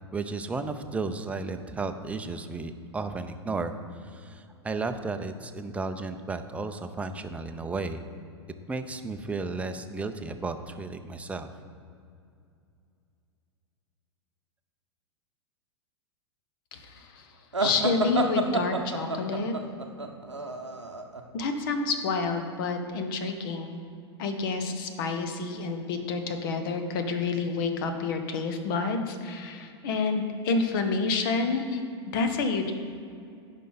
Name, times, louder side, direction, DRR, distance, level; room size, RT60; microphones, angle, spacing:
voice 1, 0.1-3.7 4.0-8.1 8.7-11.5, right 3 dB, 10° right, 7 dB, 0.6 m, -33 dB
voice 2, 16.7-19.5 21.3-23.8 24.2-32.7, left 4 dB, 50° left, 6 dB, 1.2 m, -29 dB
sound 1, 17.5-21.2, right 3 dB, 90° right, 0.8 m, -29 dB
15.0 x 5.6 x 4.1 m, 2.5 s
figure-of-eight pair, 95°, 14 cm